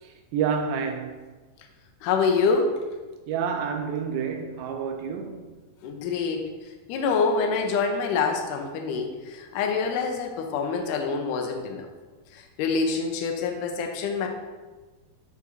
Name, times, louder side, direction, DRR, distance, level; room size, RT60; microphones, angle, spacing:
voice 1, 0.3-1.1 3.3-5.5, right 6 dB, 90° right, 3 dB, 2.5 m, -28 dB
voice 2, 2.0-2.7 5.8-6.5 6.9-11.9 12.3-14.3, left 5 dB, 75° left, 3 dB, 2.0 m, -26 dB
11.5 x 4.0 x 2.6 m, 1.3 s
omnidirectional pair, 4.4 m